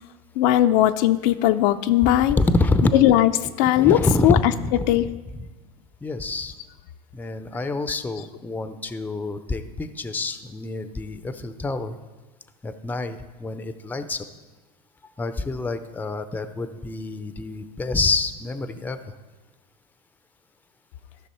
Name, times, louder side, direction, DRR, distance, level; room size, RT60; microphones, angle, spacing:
voice 1, 0.4-2.4 3.0-3.3 3.6-4.0 4.2-4.4 4.9-5.0, left 13 dB, 60° left, 9 dB, 0.5 m, -18 dB
voice 2, 2.3-3.0 3.8-5.1 5.3-5.5 6.0-6.5 7.1-12.0 12.6-14.3 15.2-19.0, left 2 dB, 10° left, 10 dB, 0.6 m, -26 dB
13.5 x 6.0 x 4.3 m, 1.2 s
hypercardioid pair, 100°, 20 cm